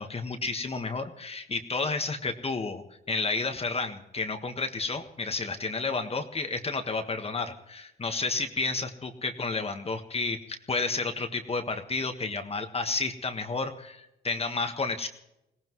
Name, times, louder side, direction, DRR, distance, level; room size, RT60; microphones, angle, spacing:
voice 1, 0.0-15.1, left 3 dB, 30° left, 6 dB, 1.5 m, -31 dB
22.0 x 17.5 x 3.1 m, 0.86 s
cardioid pair, 90°, 20 cm